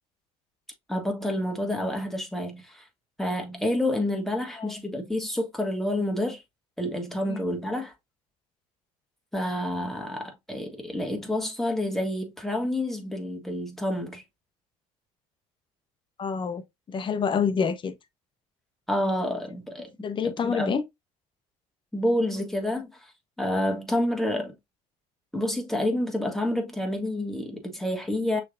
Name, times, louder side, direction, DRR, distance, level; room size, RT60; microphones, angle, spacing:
voice 1, 0.9-2.8 3.2-6.4 6.8-7.9 9.3-14.2 18.9-19.9 20.2-20.8 21.9-23.1 23.4-24.6 25.3-28.4, left 1 dB, ahead, 1.9 m, -28 dB
voice 2, 16.2-17.9 20.0-20.8, left 6 dB, 35° left, 0.8 m, -27 dB
6.2 x 3.4 x 2.5 m
supercardioid pair, 80°, 15 cm